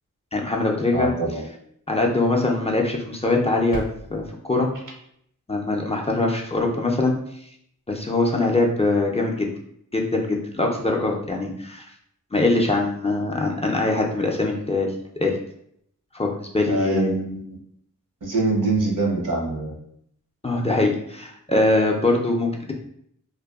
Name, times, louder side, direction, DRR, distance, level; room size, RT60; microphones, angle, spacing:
voice 1, 0.3-1.1 1.9-3.8 4.1-4.7 5.5-7.2 7.9-9.5 9.9-11.9 12.3-15.3 16.1-17.2 20.4-22.7, left 2 dB, 20° left, -1 dB, 0.4 m, -22 dB
voice 2, 0.9-1.5 16.7-17.6 18.2-19.8, right 3 dB, 70° right, -1 dB, 0.7 m, -24 dB
sound 1, 3.3-4.3, equal, 90° left, 0.6 m, -37 dB
2.6 x 2.2 x 2.3 m, 0.70 s
wide cardioid pair, 45°, 32 cm